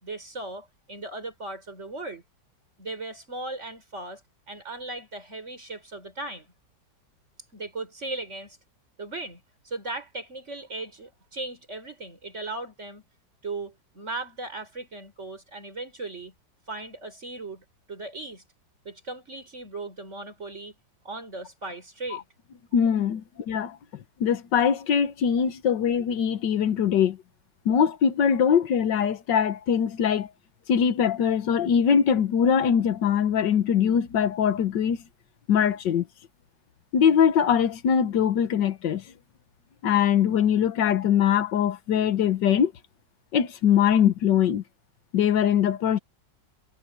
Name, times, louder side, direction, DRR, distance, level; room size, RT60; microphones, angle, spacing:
voice 1, 0.0-2.2 2.8-4.2 4.5-6.5 7.5-8.6 9.0-13.0 13.4-16.3 16.7-18.4 18.8-20.7 21.0-22.2 23.4-23.5, right 2 dB, 35° right, 4.8 m, -37 dB
voice 2, 22.7-23.8 24.2-27.2 27.7-30.3 30.7-35.0 35.5-36.1 36.9-39.0 39.8-42.7 43.3-44.6 45.1-46.0, left 8 dB, 70° left, 1.7 m, -22 dB
omnidirectional pair, 2.0 m